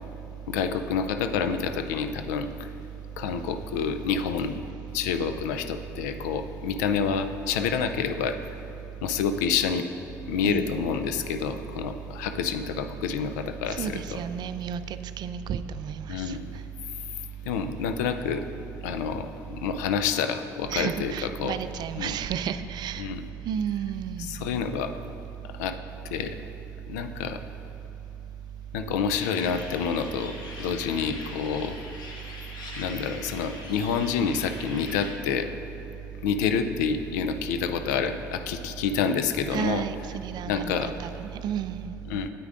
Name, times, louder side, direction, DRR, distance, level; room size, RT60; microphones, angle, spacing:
voice 1, 0.5-2.7 3.2-4.6 4.9-8.4 9.0-9.9 10.3-13.9 16.1-16.5 17.5-18.4 18.8-21.1 21.4-21.5 22.0-22.1 23.0-23.2 24.2-24.9 25.6-25.8 26.1-26.4 26.9-27.4 28.7-30.3 30.6-31.8 32.8-35.5 36.2-39.8 40.5-40.9 42.1-42.3, left 6 dB, 80° left, 8 dB, 0.4 m, -28 dB
voice 2, 10.4-10.8 13.7-16.4 20.7-23.1 23.4-24.3 39.5-42.0, right 8 dB, 50° right, 12 dB, 0.3 m, -32 dB
sound 1, 29.1-35.1, left 2 dB, 50° left, 1.2 m, -42 dB
9.4 x 8.3 x 2.5 m, 3.0 s
hypercardioid pair, 60°, 9 cm